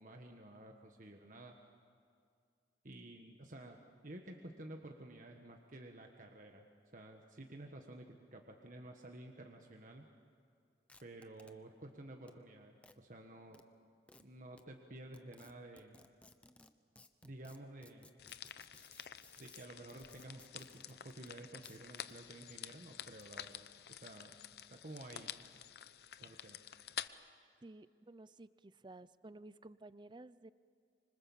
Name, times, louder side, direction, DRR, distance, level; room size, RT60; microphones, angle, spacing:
voice 1, 0.0-1.5 2.8-6.7 6.9-10.1 11.0-13.6 14.2-16.0 17.2-18.1 19.4-24.3 24.7-25.3 26.2-26.6, right 1 dB, 45° right, 3 dB, 1.5 m, -52 dB
sound 1, 10.9-11.5 12.3-12.4 12.8-13.0 13.5-13.6 14.1-14.2 14.6-14.7 15.1-21.3 21.6-22.2 23.1-23.6, left 2 dB, 5° left, 0.8 m, -61 dB
sound 2, 18.2-27.1, left 10 dB, 60° left, 0.7 m, -49 dB
voice 2, 27.6-30.5, right 2 dB, 25° right, 16 dB, 0.5 m, -54 dB
26.0 x 25.0 x 7.3 m, 2.3 s
head